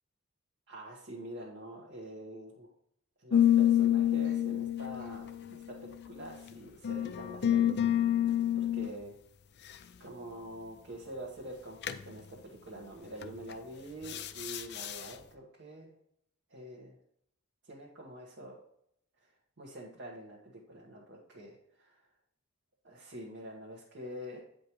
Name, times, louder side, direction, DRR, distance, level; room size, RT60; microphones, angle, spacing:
voice 1, 0.7-2.7 3.2-8.0 8.5-9.2 10.0-15.9 16.5-17.0 17.6-18.6 19.2-22.0 22.8-24.4, right 1 dB, 55° right, -3 dB, 1.3 m, -46 dB
sound 1, 3.3-6.1 6.8-8.9 11.8-12.1 13.2-13.5 14.0-15.1, left 11 dB, 55° left, 0.5 m, -28 dB
8.3 x 5.2 x 3.0 m, 0.73 s
head